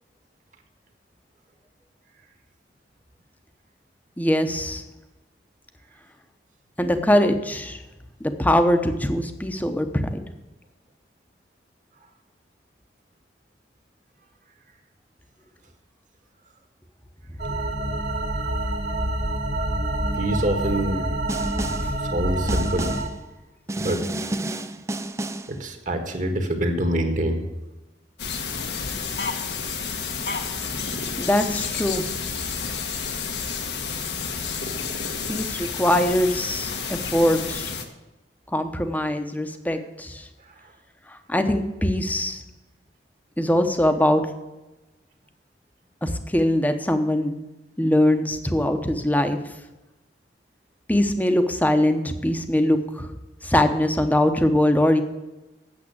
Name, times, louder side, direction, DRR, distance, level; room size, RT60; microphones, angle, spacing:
voice 1, 4.2-4.8 6.8-7.8 8.2-10.2 21.8-21.9 31.2-32.1 35.3-37.7 38.5-40.3 41.1-42.4 43.4-44.2 46.0-47.4 47.8-49.4 50.9-53.1 53.4-55.0, left 1 dB, 10° left, 7 dB, 0.9 m, -22 dB
sound 1, 17.4-23.1, right 1 dB, 70° right, 2.2 m, -27 dB
voice 2, 20.1-21.0 22.1-22.9 23.8-24.0 25.5-27.4, right 1 dB, 45° right, 5 dB, 1.6 m, -25 dB
Snare drum, 21.3-22.0 22.5-23.2 23.7-25.6, right 1 dB, 15° right, 0.4 m, -30 dB
sound 2, 28.2-37.8, left 5 dB, 75° left, 1.3 m, -30 dB
8.7 x 7.5 x 8.5 m, 1.1 s
head